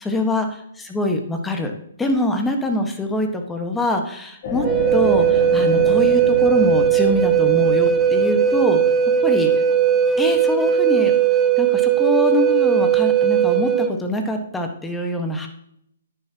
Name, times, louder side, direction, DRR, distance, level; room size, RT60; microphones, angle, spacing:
voice 1, 0.0-1.7 2.0-4.7 4.9-8.8 9.2-9.5 10.2-11.1 11.6-15.5, left 1 dB, 10° left, 4 dB, 1.4 m, -24 dB
sound 1, 4.4-13.2 13.7-13.8, left 3 dB, 45° left, 3.3 m, -32 dB
Wind instrument woodwind instrument, 4.6-13.9, right 9 dB, 10° right, 0.8 m, -18 dB
10.5 x 10.0 x 2.9 m, 0.73 s
hypercardioid pair, 140°, 0 cm